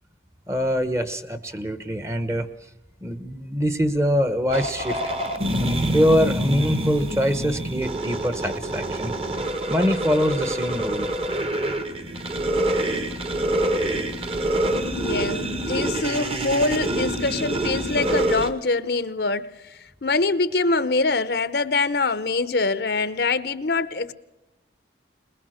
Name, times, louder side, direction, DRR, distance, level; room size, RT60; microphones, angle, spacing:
voice 1, 0.5-2.5 3.0-5.0 5.9-9.1 9.7-11.1, equal, 15° right, 12 dB, 1.1 m, -23 dB
sound 1, 4.5-18.5, right 1 dB, 30° right, 1.4 m, -26 dB
voice 2, 14.9-19.5 20.0-24.1, left 3 dB, 65° left, 14 dB, 0.9 m, -24 dB
21.5 x 21.5 x 6.5 m, 0.96 s
head